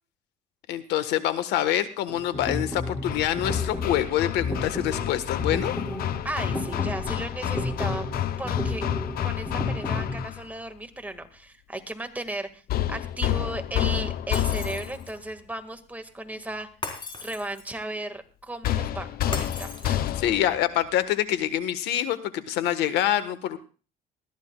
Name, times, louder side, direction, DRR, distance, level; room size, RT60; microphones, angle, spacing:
voice 1, 0.7-5.7 20.2-23.6, left 12 dB, 90° left, 11 dB, 1.4 m, -26 dB
sound 1, 2.1-10.2, left 2 dB, 10° left, 6.3 m, -32 dB
Hammer, 3.0-10.5 12.7-15.1 18.6-20.6, left 12 dB, 65° left, 0.8 m, -29 dB
voice 2, 6.2-8.1 8.4-8.8 9.2-12.6 12.9-16.7 17.2-20.1, right 1 dB, 10° right, 6 dB, 1.9 m, -35 dB
Shatter, 14.3-15.3 16.8-17.8 19.3-20.3, left 3 dB, 30° left, 4.1 m, -38 dB
20.5 x 14.0 x 2.4 m, 0.36 s
cardioid pair, 110°, 17 cm